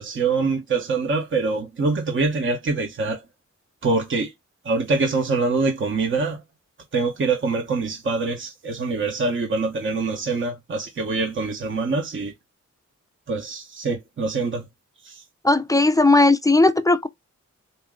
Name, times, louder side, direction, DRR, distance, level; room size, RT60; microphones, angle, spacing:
voice 1, 0.0-3.2 3.8-4.3 4.6-6.4 6.9-12.3 13.3-14.6 15.0-15.2, right 3 dB, 40° right, 0.9 m, -24 dB
voice 2, 15.4-17.1, left 2 dB, 10° left, 0.4 m, -17 dB
4.2 x 2.8 x 3.5 m
wide cardioid pair, 155°, 30 cm